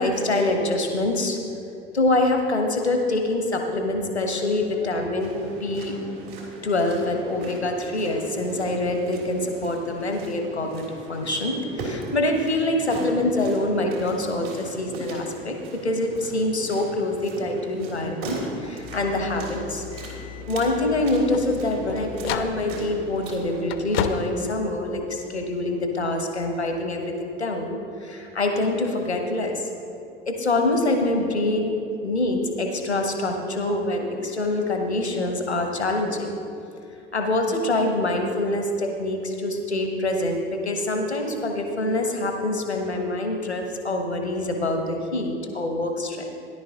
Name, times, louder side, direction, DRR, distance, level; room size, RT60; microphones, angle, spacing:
voice 1, 0.0-1.4 1.9-6.0 6.6-19.8 20.5-29.7 30.3-31.7 32.0-36.3 37.1-46.3, left 2 dB, 90° left, 4 dB, 1.2 m, -25 dB
sound 1, 5.2-23.6, right 2 dB, 60° right, 3.2 m, -39 dB
sound 2, 18.8-25.4, left 8 dB, 65° left, 0.7 m, -34 dB
17.0 x 11.0 x 2.9 m, 2.6 s
figure-of-eight pair, 70°, 32 cm